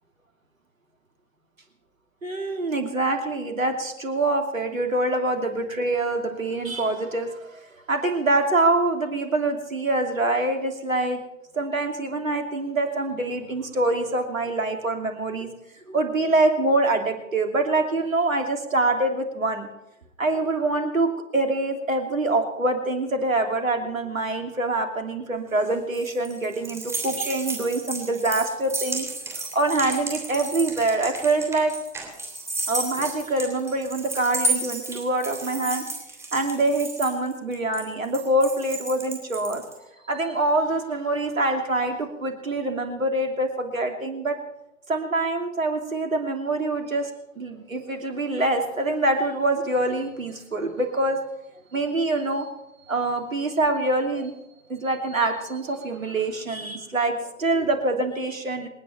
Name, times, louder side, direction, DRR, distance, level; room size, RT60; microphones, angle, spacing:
voice 1, 2.2-7.6 7.9-11.2 11.5-15.5 15.9-19.7 20.2-29.1 29.5-31.7 32.7-35.8 36.3-39.6 40.1-44.4 44.9-47.1 47.4-51.2 51.7-52.5 52.9-54.3 54.7-58.7, right 2 dB, 85° right, 4 dB, 3.1 m, -25 dB
sound 1, 25.5-39.7, right 3 dB, 5° right, 3.2 m, -32 dB
27.5 x 9.4 x 4.5 m, 0.87 s
figure-of-eight pair, 125°, 39 cm